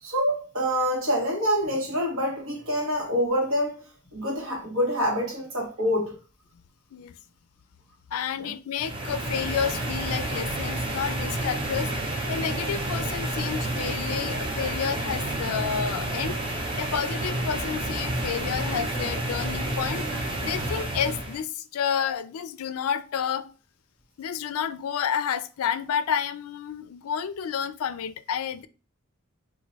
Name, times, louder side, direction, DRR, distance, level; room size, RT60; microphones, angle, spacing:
voice 1, 0.0-3.8 4.1-6.2 8.4-8.5, equal, 70° right, 1.3 m, -26 dB
voice 2, 8.1-11.9 12.3-16.4 16.8-20.1 20.4-23.5 24.2-28.7, left 8 dB, 80° left, 0.4 m, -30 dB
air conditioner, 8.8-21.4, right 1 dB, 25° right, 0.7 m, -30 dB
3.0 x 2.5 x 3.9 m
head